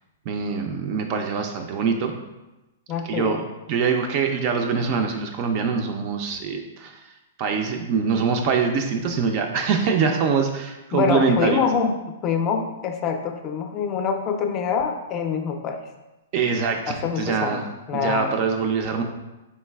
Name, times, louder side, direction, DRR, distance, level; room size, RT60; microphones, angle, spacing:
voice 1, 0.3-2.1 3.0-3.4 3.7-11.6 16.3-17.7 18.0-19.0, right 5 dB, 45° right, 4 dB, 0.3 m, -24 dB
voice 2, 2.9-3.4 10.9-11.9 12.2-15.8 16.9-18.4, left 6 dB, 30° left, 5 dB, 0.4 m, -25 dB
3.9 x 3.1 x 2.2 m, 1.0 s
hypercardioid pair, 135°, 0 cm